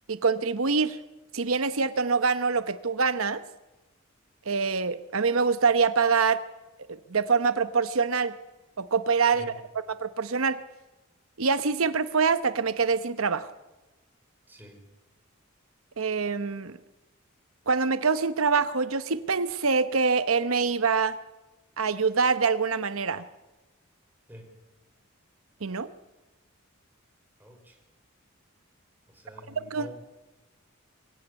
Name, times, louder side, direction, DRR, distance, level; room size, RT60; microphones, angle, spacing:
voice 1, 0.1-1.0 1.3-3.4 4.5-6.4 7.1-8.3 8.8-9.5 10.0-10.6 11.4-13.5 16.0-16.8 17.7-21.2 21.8-23.2 25.6-25.9 29.7-29.9, right 5 dB, 80° right, 12 dB, 0.9 m, -25 dB
voice 2, 14.5-14.8 24.3-24.5 27.4-27.8 29.1-29.9, equal, 10° right, 2 dB, 5.5 m, -47 dB
23.5 x 17.0 x 8.2 m, 1.1 s
head